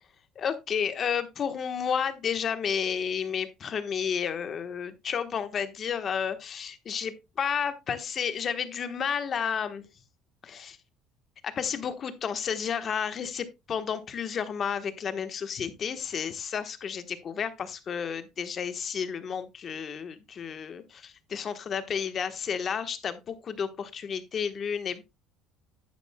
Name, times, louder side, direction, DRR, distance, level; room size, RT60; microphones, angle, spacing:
voice 1, 0.4-9.8 10.4-10.8 11.4-25.0, left 7 dB, 35° left, 1.1 m, -31 dB
10.5 x 9.0 x 2.2 m
cardioid pair, 130°, 0 cm